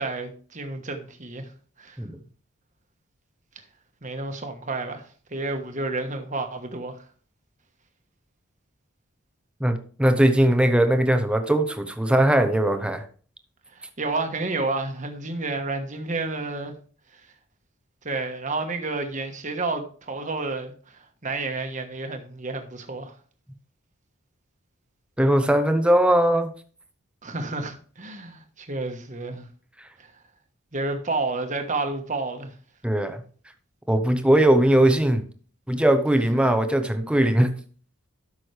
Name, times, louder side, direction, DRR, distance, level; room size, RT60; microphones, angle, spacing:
voice 1, 0.0-1.5 1.8-2.0 3.5-3.6 4.0-7.0 13.7-16.7 17.1-17.2 18.0-23.1 27.2-29.5 30.0-30.1 30.7-32.5 36.3-36.5, right 3 dB, 35° right, 1.3 m, -30 dB
voice 2, 9.6-13.0 25.2-26.5 32.8-33.2 33.9-35.2 35.7-37.5, right 1 dB, 5° right, 0.7 m, -20 dB
12.5 x 6.2 x 3.3 m
head